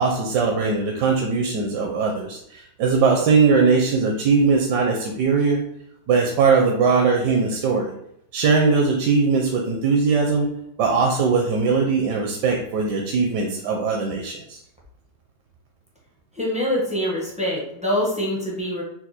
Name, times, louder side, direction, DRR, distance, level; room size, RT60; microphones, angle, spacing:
voice 1, 0.0-5.6 6.1-7.9 8.3-10.5 10.8-14.6, right 4 dB, 80° right, 1 dB, 1.2 m, -20 dB
voice 2, 16.3-18.8, left 1 dB, 10° right, -4 dB, 0.3 m, -24 dB
4.4 x 2.3 x 4.1 m, 0.72 s
omnidirectional pair, 1.8 m